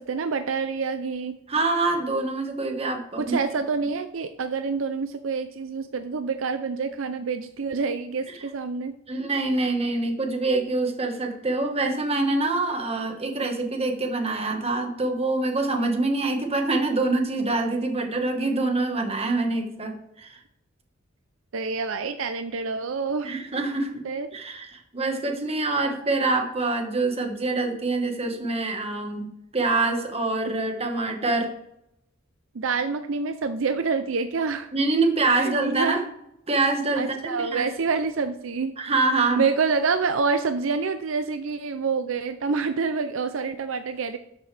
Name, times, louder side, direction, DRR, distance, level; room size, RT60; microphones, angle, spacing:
voice 1, 0.0-1.3 3.2-8.9 21.5-23.4 24.0-24.3 30.5-30.6 32.5-34.7 35.3-36.0 37.0-38.7 39.4-44.2, right 4 dB, 75° right, 9 dB, 0.6 m, -27 dB
voice 2, 1.5-3.4 9.1-20.4 23.2-24.0 24.3-29.3 29.5-31.5 34.7-36.0 36.5-37.6 38.8-39.4, right 3 dB, 30° right, 4 dB, 1.5 m, -25 dB
12.5 x 6.6 x 3.4 m, 0.81 s
head